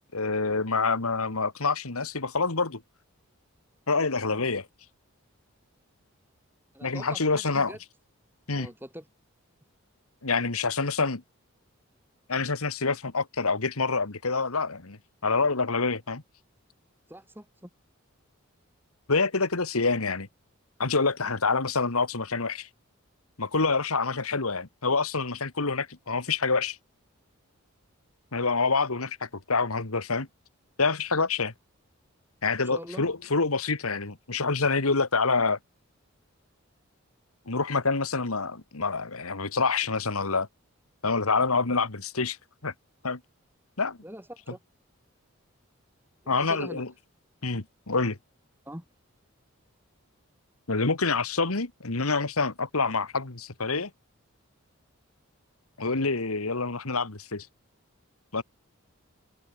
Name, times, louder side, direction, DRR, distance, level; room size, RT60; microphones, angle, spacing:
voice 1, 0.1-2.8 3.9-4.7 6.8-7.7 8.5-8.7 10.2-11.2 12.3-15.0 15.2-16.2 19.1-20.3 20.8-22.7 23.4-26.8 28.3-30.3 30.8-31.5 32.4-35.6 37.5-40.5 41.0-42.4 42.6-42.7 43.0-43.2 43.8-44.0 46.3-46.9 47.4-48.2 50.7-53.9 55.8-57.5 58.3-58.4, left 4 dB, 85° left, 1.9 m, -27 dB
voice 2, 6.7-7.8 8.6-9.1 17.1-17.7 32.6-33.0 44.0-44.6 46.2-46.8 48.7-48.8, equal, 10° right, 7.0 m, -43 dB
head